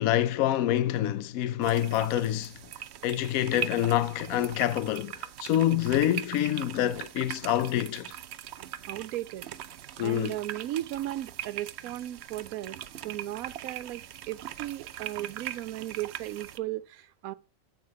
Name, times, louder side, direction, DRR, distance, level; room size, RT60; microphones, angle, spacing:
voice 1, 0.0-2.5 3.0-5.1 5.4-8.1 10.0-10.4, left 12 dB, 85° left, 1.0 m, -26 dB
sound 1, 1.6-16.6, right 10 dB, 65° right, 0.7 m, -41 dB
voice 2, 8.9-9.5 10.0-17.3, right 14 dB, 90° right, 1.1 m, -36 dB
8.1 x 6.6 x 4.7 m
omnidirectional pair, 1.5 m